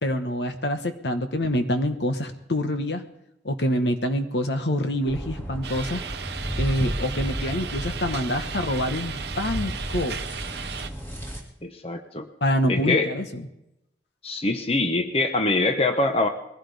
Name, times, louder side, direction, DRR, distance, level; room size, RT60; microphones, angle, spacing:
voice 1, 0.0-3.0 3.4-6.0 6.6-10.2 12.4-13.4, left 1 dB, 75° left, 7 dB, 1.4 m, -26 dB
sound 1, 5.1-11.4, equal, 10° left, 2.5 m, -33 dB
sound 2, 5.6-10.9, right 7 dB, 70° right, 0.8 m, -35 dB
voice 2, 11.6-12.3 12.7-13.1 14.2-16.3, left 2 dB, 35° left, 6 dB, 1.1 m, -24 dB
21.5 x 16.0 x 3.5 m, 0.86 s
head